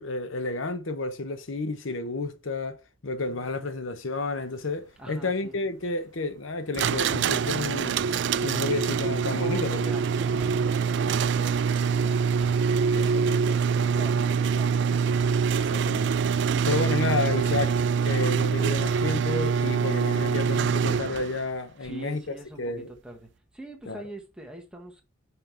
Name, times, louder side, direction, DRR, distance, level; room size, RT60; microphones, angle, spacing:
voice 1, 0.0-8.0 8.4-10.0 12.9-13.5 15.5-17.8 18.0-22.9 23.9-24.0, left 3 dB, 80° left, 0.9 m, -31 dB
voice 2, 5.0-5.6 8.5-15.8 21.8-25.0, right 1 dB, 5° right, 1.3 m, -44 dB
sound 1, 6.7-21.4, right 6 dB, 60° right, 0.4 m, -25 dB
5.8 x 5.4 x 4.5 m
head